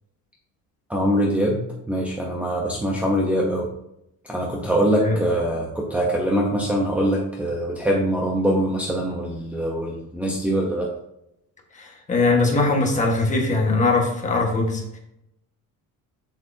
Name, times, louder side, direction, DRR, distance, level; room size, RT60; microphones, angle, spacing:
voice 1, 0.9-1.6 1.9-3.7 4.2-10.9, equal, 5° right, -4 dB, 0.8 m, -23 dB
voice 2, 11.7-15.0, left 3 dB, 20° left, 0 dB, 1.4 m, -21 dB
7.6 x 7.6 x 2.7 m, 0.80 s
cardioid pair, 175°, 33 cm